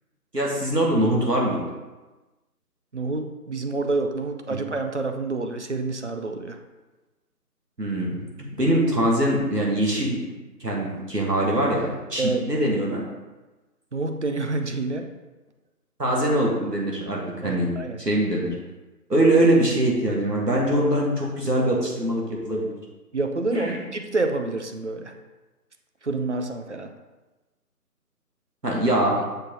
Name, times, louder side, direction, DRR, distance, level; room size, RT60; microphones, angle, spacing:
voice 1, 0.3-1.6 4.5-4.6 7.8-10.2 10.6-13.0 16.0-17.7 18.0-18.6 19.1-22.7 23.5-23.8 28.6-29.2, right 1 dB, 90° right, -3 dB, 2.1 m, -23 dB
voice 2, 2.9-6.6 12.2-12.5 13.9-15.1 17.4-18.0 23.1-25.1 26.0-26.9, right 3 dB, 50° right, 5 dB, 0.6 m, -28 dB
6.6 x 4.7 x 4.0 m, 1.2 s
figure-of-eight pair, 155°, 47 cm